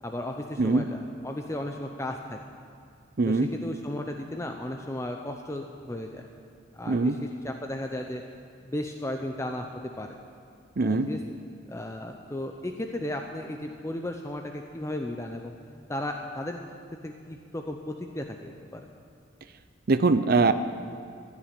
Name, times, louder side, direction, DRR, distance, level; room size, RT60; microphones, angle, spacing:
voice 1, 0.0-2.4 3.3-6.3 6.7-8.2 8.6-10.2 10.8-11.4 11.7-15.5 15.9-16.6 16.9-18.8, left 1 dB, 15° left, 3 dB, 0.6 m, -35 dB
voice 2, 3.2-3.5 6.9-7.2 10.8-11.1 19.9-20.5, right 3 dB, 50° right, 11 dB, 0.6 m, -22 dB
15.5 x 7.3 x 9.9 m, 2.3 s
head